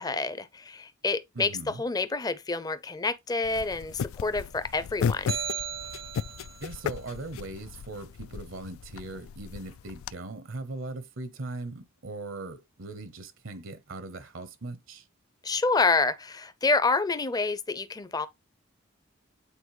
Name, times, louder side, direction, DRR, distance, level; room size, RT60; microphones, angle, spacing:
voice 1, 0.0-5.3 15.4-18.3, left 3 dB, 20° left, 0.5 m, -28 dB
voice 2, 1.3-1.8 6.6-15.1, right 2 dB, 70° right, 0.8 m, -39 dB
sound 1, 3.4-10.1, left 7 dB, 85° left, 0.3 m, -35 dB
sound 2, 5.3-6.7, right 8 dB, 90° right, 1.4 m, -35 dB
8.4 x 4.1 x 3.1 m
head